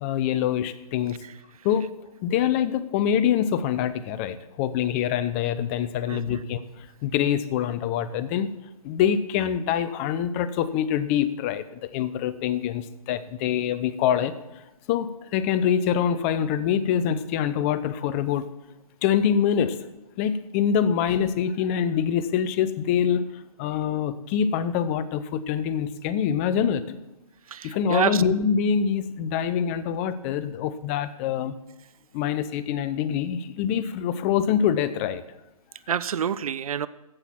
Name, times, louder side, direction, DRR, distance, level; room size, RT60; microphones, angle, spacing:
voice 1, 0.0-1.2 1.6-1.9 2.2-8.6 8.8-14.3 14.9-18.5 19.0-19.8 20.2-23.3 23.6-27.0 27.6-31.6 32.1-35.2, left 8 dB, 20° left, 14 dB, 0.6 m, -25 dB
voice 2, 6.1-6.4 27.5-28.2 35.9-36.9, right 8 dB, 65° right, 17 dB, 0.6 m, -27 dB
15.5 x 6.0 x 7.3 m, 0.94 s
hypercardioid pair, 145°, 20 cm